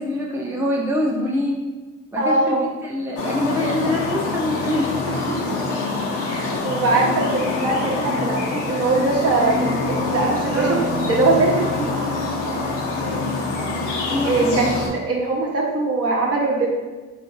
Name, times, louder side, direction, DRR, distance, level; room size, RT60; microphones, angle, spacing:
voice 1, 0.0-1.6 2.1-5.0 10.5-10.8 14.1-14.7, left 1 dB, 5° right, -3 dB, 0.5 m, -24 dB
voice 2, 2.2-2.6 5.3-5.4 6.2-11.9 14.2-16.7, right 3 dB, 50° right, -2 dB, 0.9 m, -21 dB
sound 1, 3.2-14.9, left 3 dB, 90° left, 0.7 m, -25 dB
3.6 x 2.6 x 2.5 m, 1.2 s
cardioid pair, 90°, 30 cm